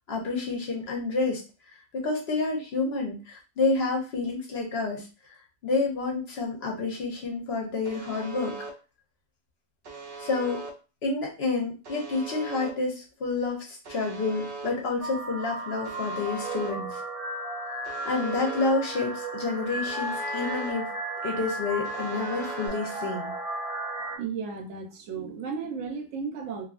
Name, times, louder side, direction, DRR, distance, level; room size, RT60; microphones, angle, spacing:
voice 1, 0.1-1.4 1.9-5.1 5.6-8.5 10.2-10.6 11.0-17.0 18.0-20.9 21.2-23.3, left 3 dB, 60° left, 1 dB, 1.0 m, -29 dB
Alarm, 7.9-8.7 9.9-10.7 11.9-12.7 13.9-14.7 15.9-16.7 17.9-18.7 19.9-20.7 21.9-22.7, right 4 dB, 60° right, 0.8 m, -39 dB
sound 1, 15.0-24.2, right 1 dB, 5° right, 0.7 m, -34 dB
voice 2, 24.1-26.6, right 5 dB, 90° right, 3 dB, 1.0 m, -34 dB
2.7 x 2.6 x 2.4 m, 0.33 s
omnidirectional pair, 1.2 m